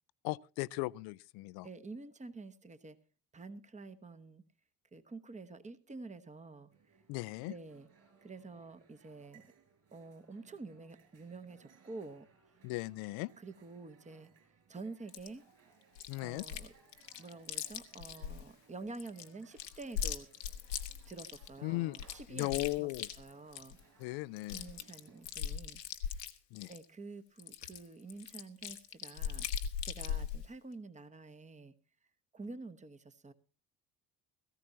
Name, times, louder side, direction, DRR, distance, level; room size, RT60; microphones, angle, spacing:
voice 1, 0.2-1.7 7.1-7.5 12.6-13.3 16.1-16.4 21.6-22.0 22.3-23.1 24.0-24.7 26.5-26.7, left 22 dB, 50° left, 0.6 m, -37 dB
voice 2, 1.6-3.0 3.3-4.4 4.9-6.7 7.5-7.9 8.2-9.5 9.9-12.3 13.4-14.3 14.7-15.4 16.2-16.7 17.2-20.3 21.1-22.9 23.2-23.8 24.5-26.2 26.7-29.5 29.8-31.7 32.3-33.3, right 3 dB, 15° right, 1.2 m, -48 dB
sound 1, 6.7-25.2, right 6 dB, 40° right, 5.7 m, -66 dB
Chewing mastication, 15.1-15.3 16.0-16.7 16.9-18.4 18.9-21.5 21.9-23.8 24.1-24.2 24.4-26.8 27.4-30.4, left 9 dB, 80° left, 1.2 m, -39 dB
18.0 x 15.0 x 2.8 m
figure-of-eight pair, 55°, 49 cm